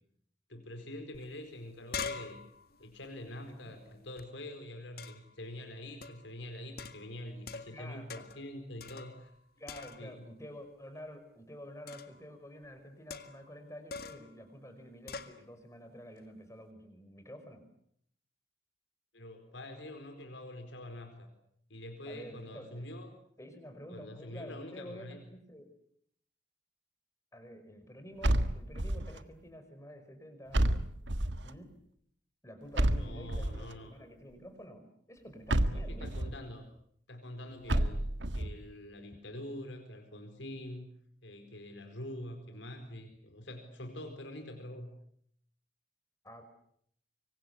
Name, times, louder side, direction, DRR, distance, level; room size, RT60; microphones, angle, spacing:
voice 1, 0.5-2.4 2.8-9.3 10.0-10.2 19.1-21.3 21.7-23.1 23.9-25.2 32.9-33.9 35.7-36.6 37.1-38.0 38.3-40.9 41.2-44.9, left 1 dB, 75° left, 6 dB, 4.4 m, -45 dB
sound 1, 1.1-1.2 1.5-4.2 5.0-5.4 6.0-6.3 6.8-7.8 8.1-8.5 8.8-9.4 9.7-10.3 11.9-12.2 13.1-13.5 13.9-14.3 15.1-15.4, left 5 dB, 50° left, 1.9 m, -44 dB
voice 2, 3.5-3.8 7.7-8.1 9.6-17.6 22.1-22.9 23.4-25.7 27.3-30.8 31.4-31.7 32.4-36.1 37.7-37.9 46.2-46.4, equal, 15° left, 7 dB, 5.4 m, -49 dB
sound 2, 28.2-29.2 30.5-31.5 32.8-33.7 35.5-36.4 37.7-38.5, right 1 dB, 70° right, 1.7 m, -30 dB
26.0 x 24.5 x 8.2 m, 0.69 s
head